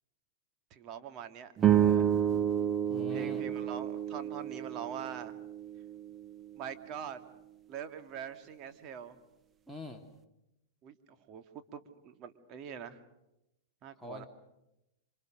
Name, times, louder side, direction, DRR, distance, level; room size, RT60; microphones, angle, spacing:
voice 1, 0.7-2.2 3.1-5.3 6.5-7.2 7.7-9.2 10.8-11.0 11.3-11.4 11.7-13.0 13.8-14.3, right 8 dB, 40° right, 8 dB, 2.6 m, -43 dB
sound 1, 1.6-6.1, right 10 dB, 25° right, 1.2 m, -29 dB
voice 2, 2.9-3.5 9.7-10.0 14.0-14.3, left 2 dB, 5° right, 4 dB, 2.6 m, -44 dB
28.0 x 26.5 x 6.6 m, 0.88 s
hypercardioid pair, 105°, 0 cm